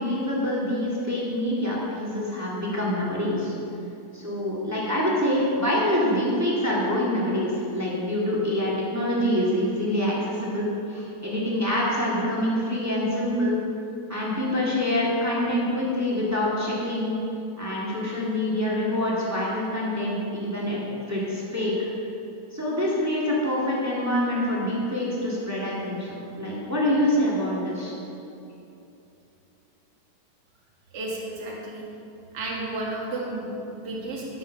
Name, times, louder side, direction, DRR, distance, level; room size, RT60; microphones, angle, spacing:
voice 1, 0.0-3.5 4.1-13.6 14.1-17.1 17.6-20.8 21.1-21.9 22.5-27.9, left 1 dB, 10° right, -6 dB, 1.1 m, -26 dB
voice 2, 30.9-31.8 32.3-34.4, right 2 dB, 40° right, -3 dB, 1.9 m, -32 dB
12.5 x 6.3 x 5.6 m, 2.7 s
omnidirectional pair, 3.5 m